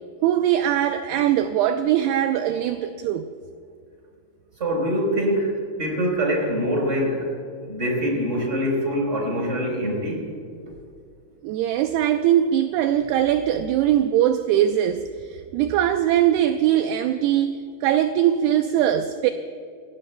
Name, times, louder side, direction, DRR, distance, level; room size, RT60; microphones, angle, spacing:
voice 1, 0.2-3.3 11.4-19.3, right 11 dB, 85° right, 7 dB, 2.3 m, -21 dB
voice 2, 4.6-5.5 5.8-7.3 7.6-10.2, equal, 15° right, -1 dB, 3.8 m, -24 dB
24.5 x 18.5 x 2.2 m, 2.4 s
omnidirectional pair, 5.1 m